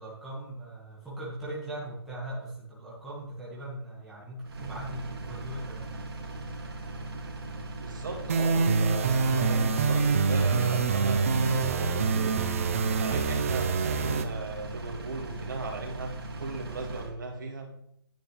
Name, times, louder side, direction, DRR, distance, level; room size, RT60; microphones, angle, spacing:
voice 1, 0.0-5.8, right 1 dB, ahead, -8 dB, 1.7 m, -39 dB
Engine, 4.4-17.1, right 2 dB, 70° right, 2.3 m, -39 dB
voice 2, 7.8-12.4 12.9-17.7, right 3 dB, 50° right, 2 dB, 2.1 m, -37 dB
sound 1, 8.3-14.2, right 4 dB, 35° right, 0.7 m, -25 dB
10.5 x 9.1 x 3.3 m, 0.76 s
hypercardioid pair, 170°, 13 cm